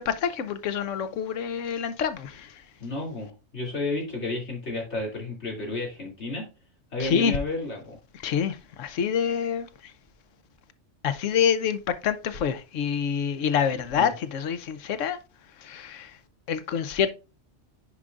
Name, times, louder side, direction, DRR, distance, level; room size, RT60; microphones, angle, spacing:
voice 1, 0.0-2.6 7.0-7.4 8.2-9.9 11.0-15.2 15.6-16.2 16.5-17.1, left 7 dB, 90° left, 1.1 m, -27 dB
voice 2, 2.8-6.5 6.9-8.0 13.9-14.1, left 2 dB, 65° left, 3.0 m, -32 dB
9.7 x 4.9 x 2.5 m
omnidirectional pair, 1.2 m